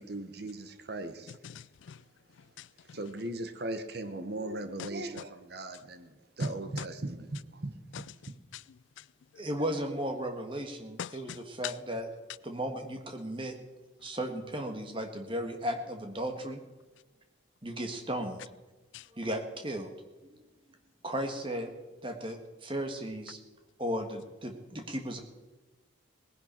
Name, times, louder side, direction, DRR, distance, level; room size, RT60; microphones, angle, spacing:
voice 1, 0.0-1.3 2.9-6.1 6.4-8.1, right 2 dB, 50° right, 1.0 m, -38 dB
voice 2, 1.3-2.0 2.6-3.0 4.8-4.9 6.4-6.5 7.9-8.0 8.5-8.6 9.0-9.1 11.0-11.4 11.6-11.7 18.9-19.1, left 10 dB, 70° left, 0.3 m, -42 dB
voice 3, 9.4-12.1 12.4-13.5 14.0-16.6 17.6-18.4 19.1-19.9 20.3-20.4 21.0-21.7 22.0-23.4 23.8-25.2, equal, 25° right, 1.5 m, -35 dB
19.0 x 10.5 x 4.4 m
head